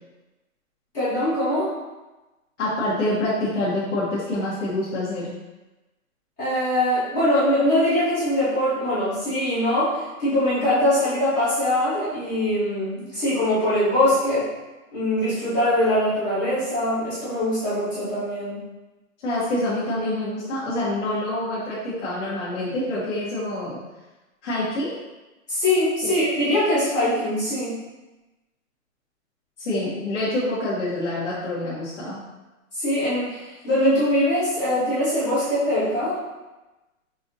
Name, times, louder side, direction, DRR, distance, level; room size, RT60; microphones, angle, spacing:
voice 1, 0.9-1.7 6.4-14.5 14.9-18.6 25.5-27.8 32.8-36.2, left 1 dB, 15° left, -13 dB, 0.9 m, -22 dB
voice 2, 2.6-5.4 19.2-23.8 24.4-25.0 26.0-26.1 29.6-32.2, left 1 dB, 55° left, -10 dB, 1.4 m, -26 dB
5.4 x 2.8 x 2.7 m, 1.1 s
hypercardioid pair, 175°, 42 cm